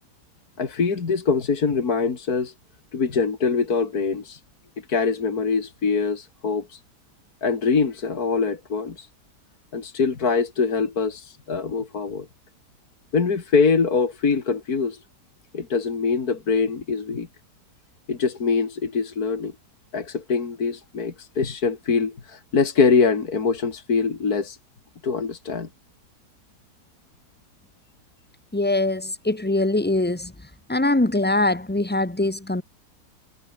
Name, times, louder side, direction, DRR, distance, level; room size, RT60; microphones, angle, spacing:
voice 1, 0.6-2.5 2.9-4.4 4.9-6.8 7.4-9.1 9.7-12.3 13.1-15.0 15.5-17.3 18.1-19.5 19.9-24.6 25.0-25.7, left 5 dB, 65° left, 2.8 m, -23 dB
voice 2, 28.5-30.3 30.7-32.6, left 2 dB, 5° left, 1.5 m, -22 dB
omnidirectional pair, 1.7 m